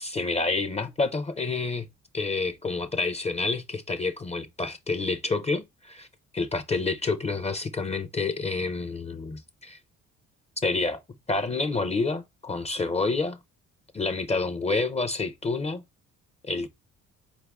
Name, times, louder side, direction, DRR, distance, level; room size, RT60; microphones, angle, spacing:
voice 1, 0.0-1.9 2.1-6.1 6.3-9.8 10.6-11.0 11.3-13.4 13.9-15.8 16.5-16.7, left 3 dB, 20° left, 0.4 m, -28 dB
4.3 x 2.4 x 3.4 m
cardioid pair, 90°, 30 cm